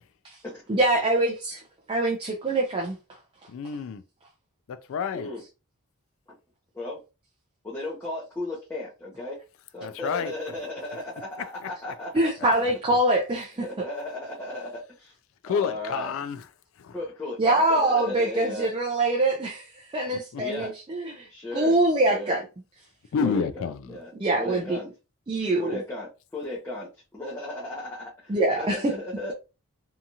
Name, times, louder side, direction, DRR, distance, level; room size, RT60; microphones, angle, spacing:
voice 1, 0.7-1.6 1.9-3.2 12.1-13.7 17.4-22.5 24.2-24.8 25.3-25.8 28.3-28.9, right 2 dB, 25° right, 0.4 m, -24 dB
voice 2, 3.5-4.0 4.7-5.3 9.8-10.3 15.4-16.5 16.8-17.0 20.3-20.4 23.1-24.0, left 6 dB, 60° left, 0.3 m, -29 dB
voice 3, 7.6-9.4 9.7-12.5 13.6-15.1 15.4-16.1 16.9-18.7 20.4-20.7 21.3-21.8 22.1-22.3 23.2-24.1 24.4-24.9 25.6-29.3, left 2 dB, 10° left, 0.6 m, -35 dB
2.8 x 2.3 x 2.7 m
head